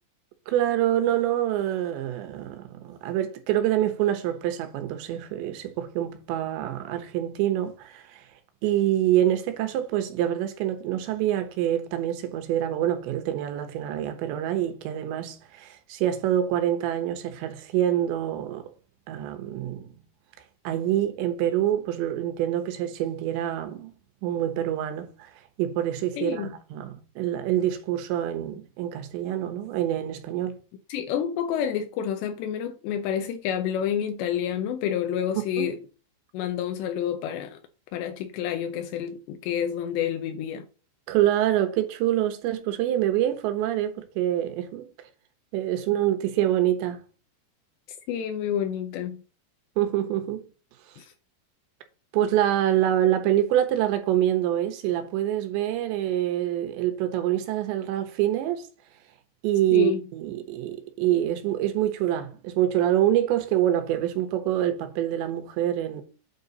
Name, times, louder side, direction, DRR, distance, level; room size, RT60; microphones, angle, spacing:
voice 1, 0.5-8.2 8.6-18.6 19.1-19.9 20.7-23.9 24.2-25.3 25.6-30.6 35.6-35.7 41.1-44.9 45.5-47.0 49.8-50.4 52.1-58.6 59.4-66.0, right 12 dB, 85° right, 3.4 m, -26 dB
voice 2, 26.2-26.5 30.9-35.8 36.3-37.6 37.9-40.7 48.1-49.2 51.0-51.1 59.7-60.0, left 9 dB, 85° left, 2.9 m, -29 dB
8.9 x 4.0 x 5.3 m
omnidirectional pair, 5.1 m